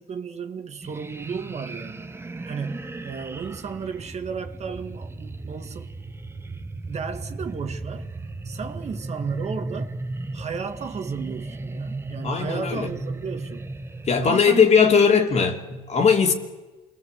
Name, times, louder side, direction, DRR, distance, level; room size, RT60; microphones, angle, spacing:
voice 1, 0.0-5.9 6.8-8.1 8.5-9.9 10.3-13.7 14.2-15.2, right 5 dB, 40° right, 1.9 m, -33 dB
sound 1, 0.8-14.3, right 2 dB, 15° right, 1.2 m, -36 dB
voice 2, 12.2-12.9 14.1-16.3, left 6 dB, 40° left, 2.9 m, -19 dB
28.5 x 21.0 x 8.1 m
cardioid pair, 110°, 17 cm